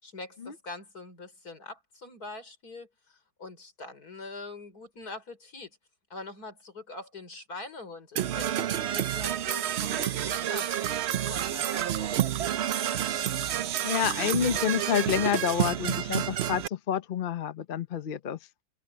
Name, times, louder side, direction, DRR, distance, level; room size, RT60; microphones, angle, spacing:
voice 1, 0.0-5.8 6.1-12.3, left 2 dB, 65° left, 5.3 m, -44 dB
Percussion / Brass instrument, 8.2-16.7, right 11 dB, 60° right, 0.7 m, -29 dB
voice 2, 13.8-18.4, left 9 dB, 50° left, 0.7 m, -28 dB
omnidirectional pair, 1.7 m